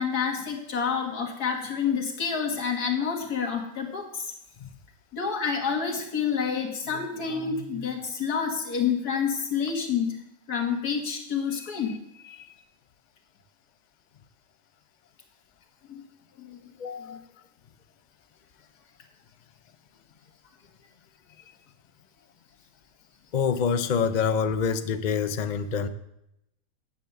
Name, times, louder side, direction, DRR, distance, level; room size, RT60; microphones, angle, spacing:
voice 1, 0.0-4.3 5.1-10.2 10.5-12.0 15.9-16.0 16.4-16.6 17.0-17.2, left 6 dB, 65° left, 1 dB, 2.3 m, -28 dB
voice 2, 12.2-12.6 16.8-17.2 23.3-25.9, left 6 dB, 85° left, 10 dB, 0.4 m, -27 dB
9.7 x 7.2 x 8.0 m, 0.84 s
omnidirectional pair, 1.8 m